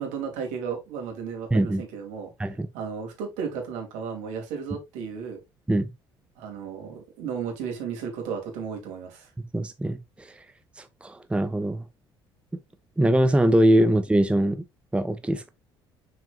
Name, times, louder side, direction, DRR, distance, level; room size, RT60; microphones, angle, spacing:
voice 1, 0.0-2.3 2.7-5.4 6.4-9.3 13.8-13.9, right 6 dB, 60° right, 2.7 m, -34 dB
voice 2, 1.5-1.8 2.4-2.7 5.7-5.9 9.5-10.3 10.8-11.8 13.0-14.6 14.9-15.4, right 1 dB, 10° right, 0.7 m, -22 dB
6.7 x 6.1 x 2.5 m
figure-of-eight pair, 50°, 13 cm